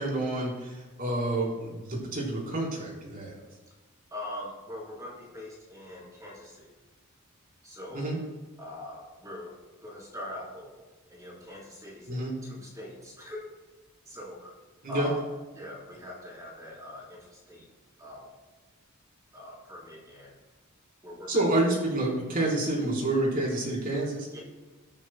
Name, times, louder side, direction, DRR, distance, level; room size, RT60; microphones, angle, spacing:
voice 1, 0.0-3.4 7.9-8.2 12.1-12.3 14.8-15.1 21.3-24.3, right 2 dB, 40° right, -2 dB, 3.9 m, -28 dB
voice 2, 4.1-6.7 7.6-8.1 8.6-13.4 14.1-14.5 14.9-15.2 15.5-17.7 18.0-18.3 19.3-20.4 21.0-21.5 24.3-24.4, left 1 dB, 15° right, -5 dB, 3.7 m, -42 dB
22.5 x 9.9 x 2.2 m, 1.2 s
head